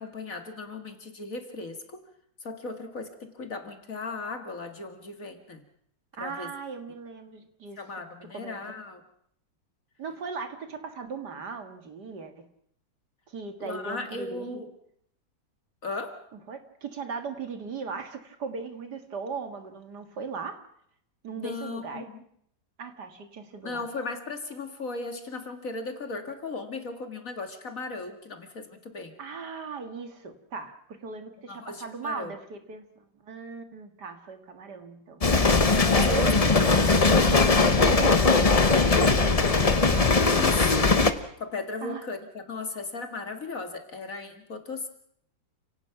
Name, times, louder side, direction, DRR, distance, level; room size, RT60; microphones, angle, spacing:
voice 1, 0.0-2.0 2.4-5.6 6.2-6.5 7.8-9.0 13.6-14.7 15.8-16.2 21.3-22.2 23.6-29.1 31.5-32.3 35.8-36.3 40.3-41.0 41.4-44.9, left 3 dB, 45° left, 6 dB, 2.5 m, -36 dB
voice 2, 6.1-7.8 8.3-8.6 10.0-12.5 13.3-14.6 16.5-20.6 21.2-22.1 22.8-23.9 29.2-37.1 37.8-40.6 41.8-42.0, right 5 dB, 65° right, 7 dB, 2.4 m, -38 dB
sound 1, 35.2-41.1, left 3 dB, 25° left, 0.8 m, -20 dB
30.0 x 17.5 x 5.9 m, 0.69 s
omnidirectional pair, 2.0 m